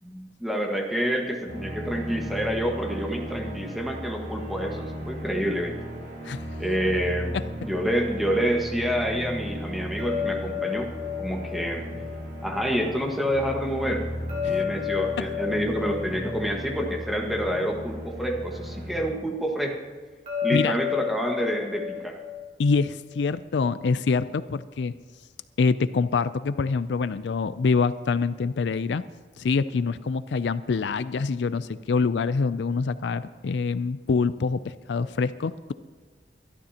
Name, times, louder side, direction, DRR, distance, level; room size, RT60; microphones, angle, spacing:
voice 1, 0.0-5.8 6.6-10.9 11.2-11.9 12.4-14.1 14.4-19.8 20.4-22.2, equal, ahead, 1 dB, 1.5 m, -28 dB
sound 1, 1.5-19.1, equal, 70° right, 3.1 m, -36 dB
sound 2, 10.0-13.1 14.3-17.8 20.3-23.3, left 9 dB, 35° right, 3.4 m, -32 dB
voice 2, 22.6-24.9 25.6-29.0 29.4-35.7, left 4 dB, 70° left, 14 dB, 0.4 m, -25 dB
24.0 x 12.0 x 2.9 m, 1.5 s
head